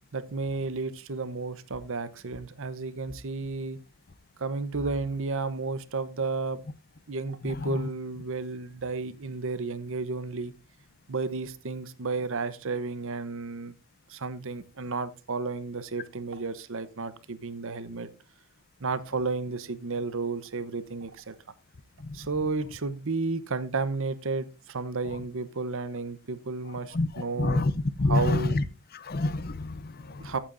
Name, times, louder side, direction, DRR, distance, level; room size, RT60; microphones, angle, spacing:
voice 1, 0.1-3.8 4.4-6.6 7.1-10.5 11.1-13.7 14.1-18.1 18.8-21.4 22.1-27.6 28.1-28.6 30.0-30.4, right 3 dB, 60° right, 0.8 m, -32 dB
voice 2, 7.4-7.9 22.0-22.2 26.9-28.6 28.9-30.3, left 2 dB, 40° left, 0.6 m, -28 dB
14.0 x 8.7 x 2.6 m
head